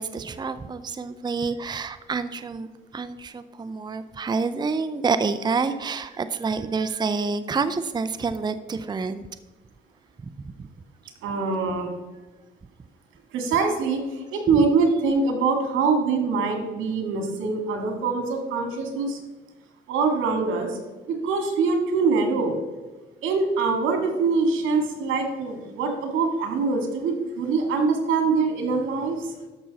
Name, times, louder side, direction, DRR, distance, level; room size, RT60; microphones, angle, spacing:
voice 1, 0.0-9.3 10.2-10.3 14.5-14.6, right 4 dB, 20° right, 12 dB, 0.5 m, -28 dB
voice 2, 11.2-11.9 13.3-19.2 19.9-20.8 21.1-22.6 23.2-29.3, right 4 dB, 90° right, 4 dB, 2.0 m, -24 dB
13.0 x 6.1 x 4.1 m, 1.2 s
cardioid pair, 90°, 20 cm